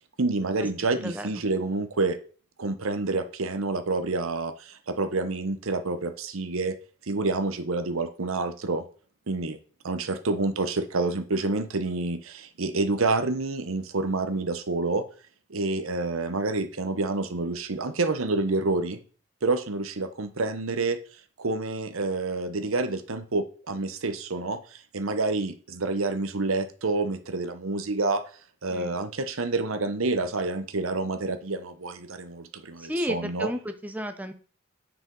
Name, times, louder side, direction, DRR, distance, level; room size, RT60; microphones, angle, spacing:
voice 1, 0.2-2.2 2.6-6.8 7.1-8.8 9.3-9.6 9.8-15.0 15.5-19.0 19.4-21.0 21.4-28.2 28.6-33.5, right 3 dB, 85° right, 10 dB, 0.9 m, -28 dB
voice 2, 32.8-34.3, equal, 5° right, 8 dB, 0.7 m, -32 dB
9.2 x 5.0 x 3.9 m, 0.41 s
head